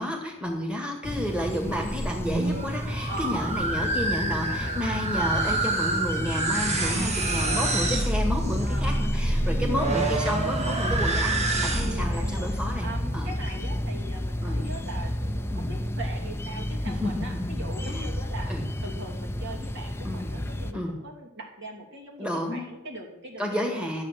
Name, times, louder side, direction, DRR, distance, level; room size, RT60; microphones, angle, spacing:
voice 1, 0.0-12.9 13.1-13.3 14.4-14.7 15.5-15.7 16.8-18.1 18.5-18.6 20.0-20.3 20.7-20.9 22.2-22.7 23.4-24.0, left 1 dB, 5° right, 0 dB, 2.0 m, -31 dB
sound 1, 1.0-20.7, equal, 10° left, 0.6 m, -31 dB
sound 2, 2.1-12.2, right 2 dB, 30° right, 1.8 m, -28 dB
voice 2, 3.1-3.5 4.2-4.9 6.7-7.7 8.6-9.0 11.8-12.5 12.8-18.5 18.8-23.9, right 1 dB, 55° right, -1 dB, 2.8 m, -41 dB
12.5 x 8.3 x 7.5 m, 0.94 s
head